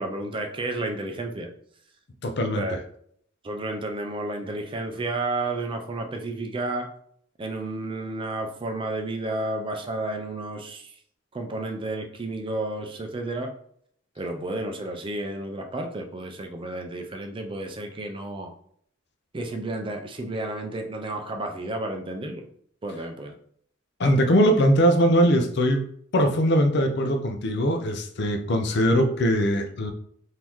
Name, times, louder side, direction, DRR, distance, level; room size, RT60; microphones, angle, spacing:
voice 1, 0.0-1.5 2.5-2.8 3.4-6.9 7.4-10.9 11.3-13.5 14.2-18.5 19.3-22.4 22.8-23.3, right 2 dB, 25° right, 4 dB, 0.5 m, -31 dB
voice 2, 2.2-2.8 24.0-25.8 26.1-29.9, equal, 60° left, 6 dB, 0.5 m, -21 dB
3.7 x 2.7 x 3.0 m, 0.65 s
head